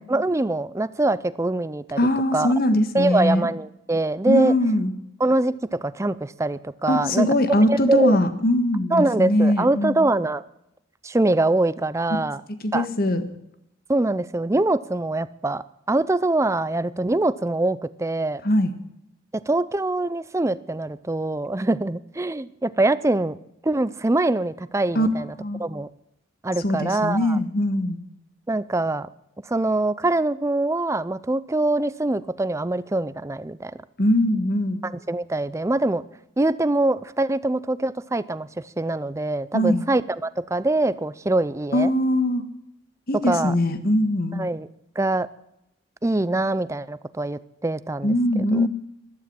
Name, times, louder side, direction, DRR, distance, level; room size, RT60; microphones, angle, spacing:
voice 1, 0.0-2.0 2.3-2.5 2.9-4.6 5.2-7.3 7.7-8.2 8.9-10.4 11.0-12.4 12.7-12.9 13.9-18.4 19.3-23.4 23.6-25.3 25.6-25.9 26.4-27.4 28.5-29.1 29.5-33.7 34.8-36.0 36.4-41.9 43.3-43.5 44.4-44.7 45.0-45.3 46.0-48.2 48.5-48.7, right 2 dB, 15° right, 16 dB, 0.5 m, -23 dB
voice 2, 2.0-3.5 4.3-4.9 6.9-10.0 12.6-13.2 18.4-18.7 25.0-25.1 25.4-25.6 26.6-28.0 34.0-34.8 39.5-39.9 41.7-42.5 43.1-44.5 48.0-48.7, left 1 dB, 50° left, 10 dB, 1.6 m, -21 dB
13.5 x 12.0 x 8.7 m, 0.82 s
head